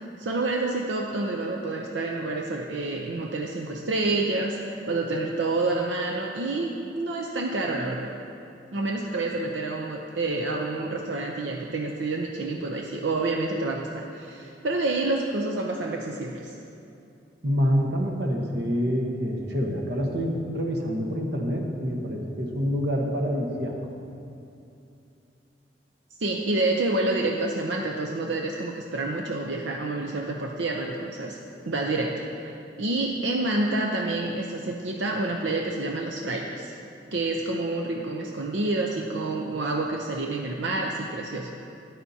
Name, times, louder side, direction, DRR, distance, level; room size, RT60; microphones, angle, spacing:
voice 1, 0.0-8.1 8.7-16.6 26.2-31.4 31.7-36.7 37.1-41.5, right 2 dB, 90° right, 0 dB, 0.7 m, -28 dB
voice 2, 17.4-23.8, equal, 65° right, 0 dB, 1.2 m, -27 dB
13.5 x 10.5 x 2.8 m, 2.7 s
head